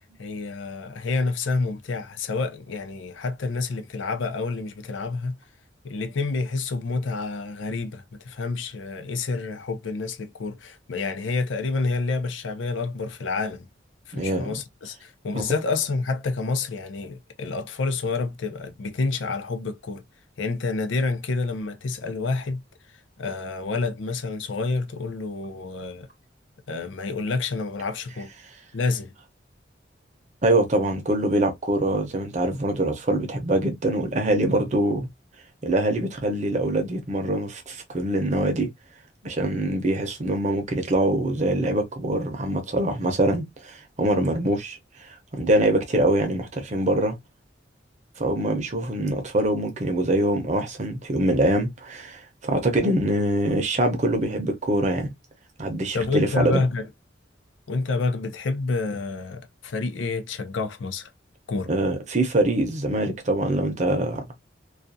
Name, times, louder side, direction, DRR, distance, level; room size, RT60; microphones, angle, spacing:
voice 1, 0.2-5.4 5.8-13.7 14.1-20.0 20.4-22.6 23.2-26.1 26.7-28.3 28.7-29.1 55.9-56.9 57.7-61.1 61.5-61.7, left 3 dB, 85° left, 0.5 m, -28 dB
voice 2, 14.1-14.5 15.3-15.4 30.4-35.1 35.6-38.7 39.2-44.8 45.4-47.2 48.2-55.1 55.6-56.6 61.7-64.4, right 1 dB, 40° right, 0.6 m, -24 dB
2.4 x 2.2 x 2.6 m
head